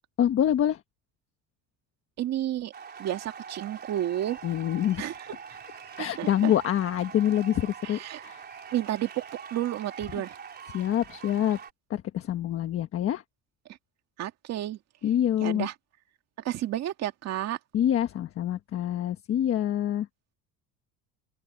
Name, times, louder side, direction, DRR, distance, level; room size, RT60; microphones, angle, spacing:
voice 1, 0.2-0.8 4.4-5.0 6.0-8.4 10.7-11.6 11.9-13.2 15.0-15.7 17.7-20.1, left 10 dB, 35° left, 1.3 m, -26 dB
voice 2, 2.2-2.7 3.0-4.4 5.0-5.1 5.5-5.6 6.0-6.5 7.8-8.2 8.7-10.4 14.2-14.8 15.4-15.7 16.4-17.6, right 12 dB, 45° right, 2.2 m, -31 dB
sound 1, 2.7-11.7, right 7 dB, 25° right, 3.8 m, -44 dB
open air
cardioid pair, 165°, 37 cm